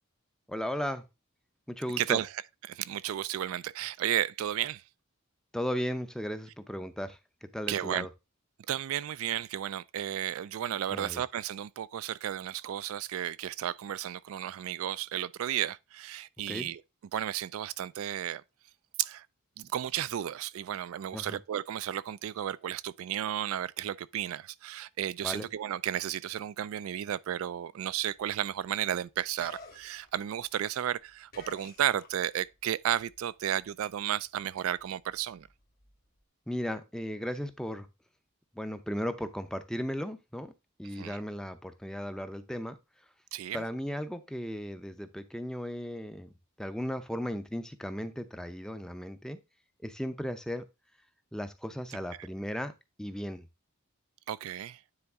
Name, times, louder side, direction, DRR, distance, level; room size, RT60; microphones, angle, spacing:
voice 1, 0.5-1.0 1.7-2.2 5.5-8.1 10.9-11.2 16.5-16.7 21.1-21.4 25.2-25.5 36.5-37.9 38.5-40.5 40.8-42.8 43.5-46.3 46.6-49.4 49.8-50.6 51.3-52.7 53.0-53.5, equal, 5° left, 0.5 m, -36 dB
voice 2, 2.0-2.3 2.7-4.8 7.7-8.1 8.7-16.8 17.1-18.4 19.0-19.3 19.6-35.5 40.9-41.2 43.3-43.6 52.2-52.3 54.3-54.8, right 11 dB, 70° right, 0.3 m, -33 dB
sound 1, 28.0-32.6 32.9-36.2, left 4 dB, 45° left, 1.5 m, -54 dB
9.6 x 4.0 x 3.5 m
head